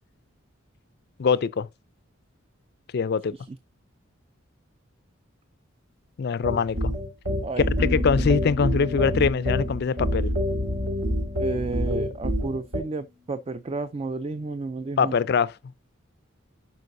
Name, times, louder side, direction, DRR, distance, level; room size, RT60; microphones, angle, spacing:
voice 1, 1.2-1.7 2.9-3.3 6.2-6.9 7.6-10.3 15.0-15.6, left 5 dB, 50° left, 0.4 m, -23 dB
sound 1, 6.4-12.8, equal, 80° right, 2.5 m, -27 dB
voice 2, 7.4-8.1 11.4-15.1, right 3 dB, 30° right, 0.3 m, -32 dB
sound 2, 7.8-12.7, left 6 dB, 45° right, 2.4 m, -40 dB
11.0 x 4.7 x 2.6 m
head